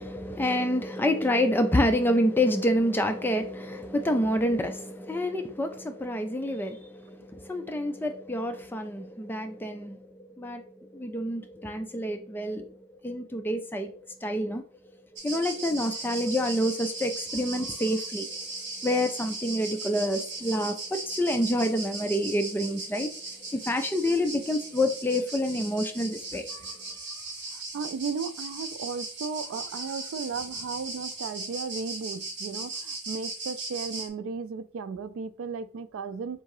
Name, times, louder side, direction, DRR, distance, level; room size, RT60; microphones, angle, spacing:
voice 1, 0.0-14.6 15.2-18.4 18.8-23.1 23.5-26.5, left 1 dB, 10° left, 0.4 m, -28 dB
sound 1, 15.2-34.1, right 3 dB, 55° right, 1.6 m, -38 dB
voice 2, 26.5-27.3 27.5-36.4, right 5 dB, 80° right, 0.3 m, -35 dB
3.7 x 2.7 x 4.7 m
head